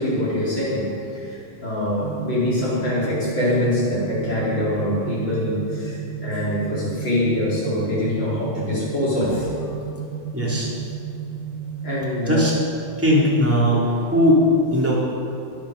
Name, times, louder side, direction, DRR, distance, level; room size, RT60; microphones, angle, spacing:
voice 1, 0.0-9.5 11.8-12.4, left 1 dB, 30° left, -7 dB, 4.7 m, -24 dB
sound 1, 2.0-12.0, right 8 dB, 80° right, 1.7 m, -33 dB
voice 2, 10.3-10.7 12.3-12.5 13.0-14.4 14.7-15.0, equal, 5° right, -5 dB, 2.8 m, -18 dB
22.0 x 8.6 x 6.8 m, 2.7 s
omnidirectional pair, 4.0 m